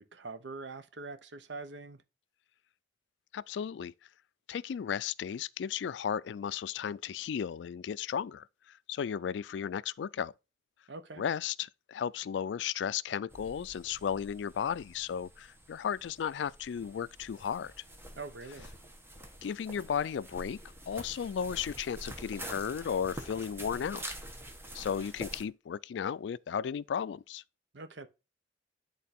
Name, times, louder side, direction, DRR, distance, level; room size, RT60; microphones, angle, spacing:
voice 1, 0.0-2.0 10.9-11.2 18.2-18.7 27.7-28.1, right 3 dB, 75° right, 0.9 m, -44 dB
voice 2, 3.3-3.9 4.5-10.3 11.2-17.7 19.4-20.6 20.9-24.0 24.7-27.4, left 8 dB, 70° left, 0.3 m, -35 dB
sound 1, 13.3-25.4, right 1 dB, 15° right, 1.1 m, -47 dB
10.0 x 3.8 x 4.3 m
head